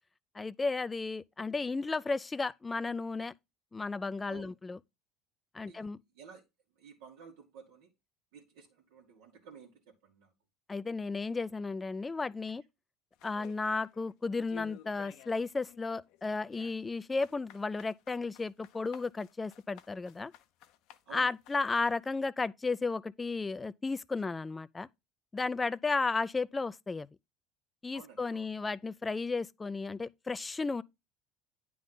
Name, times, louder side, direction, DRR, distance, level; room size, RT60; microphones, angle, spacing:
voice 1, 0.3-3.3 3.7-4.8 5.5-6.0 10.7-12.6 13.2-20.3 21.1-24.9 25.3-27.1 27.8-30.8, left 3 dB, 15° left, 0.3 m, -34 dB
voice 2, 6.8-7.9 8.3-10.3 21.0-21.3 27.9-28.5, right 6 dB, 85° right, 1.5 m, -53 dB
sound 1, 13.2-14.1 14.5-15.4 15.7-21.9, left 12 dB, 65° left, 0.7 m, -54 dB
9.3 x 3.5 x 3.8 m
supercardioid pair, 110°, 0 cm